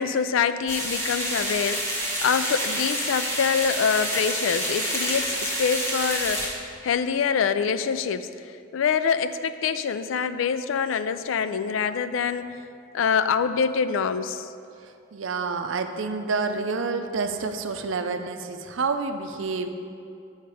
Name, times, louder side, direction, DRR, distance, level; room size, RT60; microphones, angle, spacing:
voice 1, 0.0-8.3 8.7-12.6 12.9-14.5, left 6 dB, 85° left, 12 dB, 0.3 m, -25 dB
sound 1, 0.7-6.5, equal, 15° left, 1.1 m, -28 dB
voice 2, 15.1-19.8, right 4 dB, 80° right, 7 dB, 0.5 m, -28 dB
7.8 x 5.6 x 4.8 m, 2.5 s
head